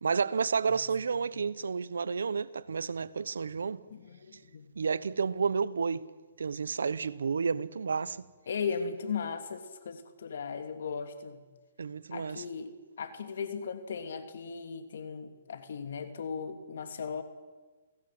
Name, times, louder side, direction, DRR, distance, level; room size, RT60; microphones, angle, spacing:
voice 1, 0.0-3.8 4.8-6.0 6.4-8.2 11.8-12.4, right 5 dB, 85° right, 1.0 m, -31 dB
voice 2, 3.9-4.7 8.5-11.4 12.1-17.2, left 6 dB, 70° left, 3.2 m, -37 dB
29.5 x 18.0 x 7.9 m
hypercardioid pair, 150°, 0 cm